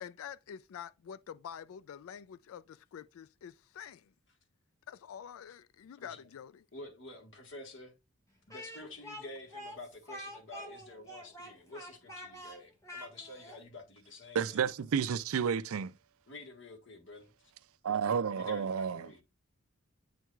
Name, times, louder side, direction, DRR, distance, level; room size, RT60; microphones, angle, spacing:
voice 1, 0.0-4.1 4.9-6.7, left 8 dB, 80° left, 0.3 m, -47 dB
voice 2, 6.7-8.0 8.5-14.7 16.3-17.3 18.4-19.2, left 2 dB, 60° left, 1.5 m, -49 dB
Speech, 8.5-13.6, equal, 15° left, 1.4 m, -47 dB
voice 3, 14.3-15.9 17.8-19.1, right 7 dB, 90° right, 0.4 m, -31 dB
8.9 x 4.5 x 2.3 m
head